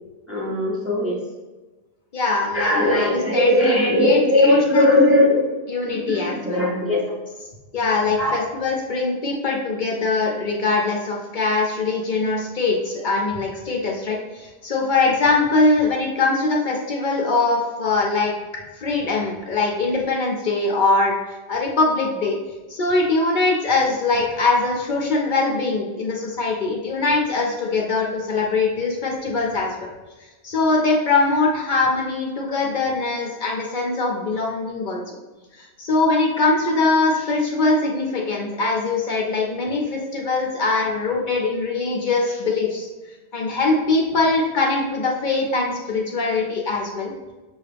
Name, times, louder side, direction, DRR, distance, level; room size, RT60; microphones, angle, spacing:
voice 1, 0.3-1.2 2.5-5.4 5.9-7.1 8.2-8.4, left 1 dB, 15° right, -4 dB, 0.6 m, -18 dB
voice 2, 2.1-5.0 5.7-6.6 7.7-18.3 18.8-22.4 22.7-29.7 30.4-35.2 35.6-42.9 43.3-47.1, left 3 dB, 55° left, -1 dB, 0.7 m, -22 dB
5.5 x 2.4 x 3.3 m, 1.2 s
omnidirectional pair, 1.1 m